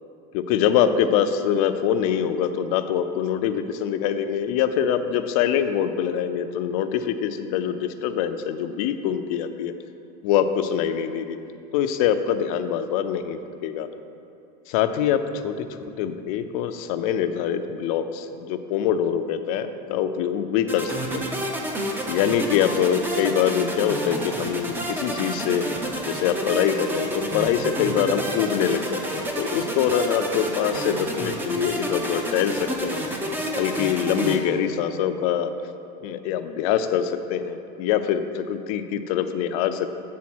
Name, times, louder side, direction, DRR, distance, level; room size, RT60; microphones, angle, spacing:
voice 1, 0.3-9.7 10.2-11.4 11.7-13.9 14.7-15.5 16.0-20.9 21.3-21.4 22.1-25.7 26.0-33.1 33.6-35.5 36.0-39.9, left 9 dB, 65° left, 9 dB, 0.5 m, -24 dB
sound 1, 20.7-34.4, right 1 dB, 10° right, 0.6 m, -29 dB
8.5 x 3.8 x 6.1 m, 2.7 s
supercardioid pair, 150°, 20 cm